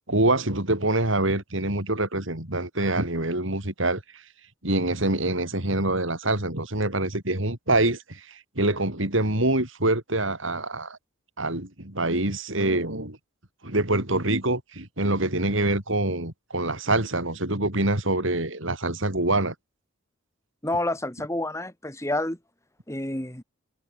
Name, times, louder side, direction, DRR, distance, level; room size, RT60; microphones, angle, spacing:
voice 1, 0.1-4.2 4.6-11.0 11.4-13.2 13.6-19.5, right 2 dB, 65° right, 5.0 m, -25 dB
voice 2, 20.6-22.4 22.9-23.4, left 1 dB, 15° left, 2.9 m, -29 dB
head